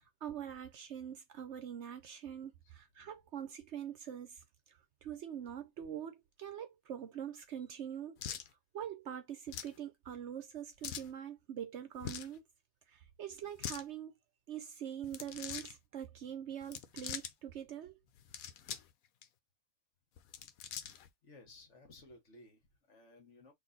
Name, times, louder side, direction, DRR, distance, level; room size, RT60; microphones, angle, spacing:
voice 1, 0.0-8.2 8.7-12.4 12.9-14.1 14.5-18.0, right 9 dB, 65° right, 0.8 m, -44 dB
sound 1, 8.2-8.5 9.5-9.8 10.8-11.1 12.0-12.4 13.4-13.8 15.0-15.7 16.6-17.3 18.2-18.9 19.2-19.3 20.2-21.1, left 9 dB, 85° left, 1.1 m, -43 dB
voice 2, 21.2-23.5, left 2 dB, 55° left, 1.6 m, -58 dB
3.9 x 2.5 x 4.0 m
omnidirectional pair, 1.5 m